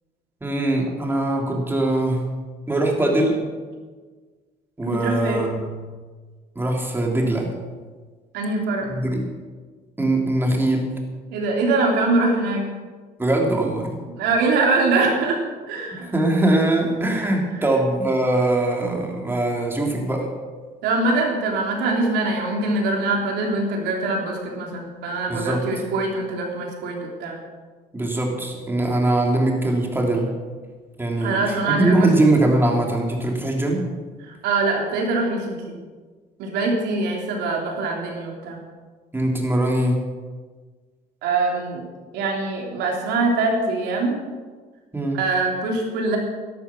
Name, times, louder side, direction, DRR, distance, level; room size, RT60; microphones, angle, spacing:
voice 1, 0.4-2.2 2.7-3.4 4.8-5.7 6.5-7.5 8.9-9.2 10.0-10.9 13.2-14.0 15.9-20.3 25.3-25.6 27.9-30.3 31.0-33.8 39.1-40.0 44.9-45.2, right 1 dB, 15° right, 0 dB, 3.1 m, -21 dB
voice 2, 4.8-5.6 8.3-8.9 11.3-12.7 14.1-16.1 20.8-27.4 31.2-32.1 34.2-35.8 36.4-38.6 41.2-41.8 42.1-44.2 45.1-46.2, right 3 dB, 85° right, 0 dB, 3.5 m, -23 dB
12.5 x 12.0 x 6.2 m, 1.4 s
cardioid pair, 110°, 17 cm